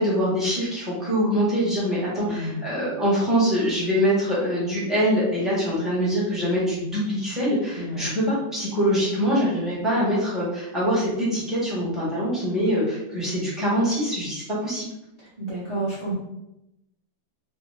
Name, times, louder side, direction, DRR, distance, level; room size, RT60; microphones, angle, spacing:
voice 1, 0.0-14.9, equal, ahead, -8 dB, 0.8 m, -24 dB
voice 2, 2.2-2.6 7.8-8.0 15.2-16.1, right 2 dB, 60° right, -10 dB, 0.4 m, -31 dB
3.2 x 2.4 x 3.2 m, 0.89 s
omnidirectional pair, 2.0 m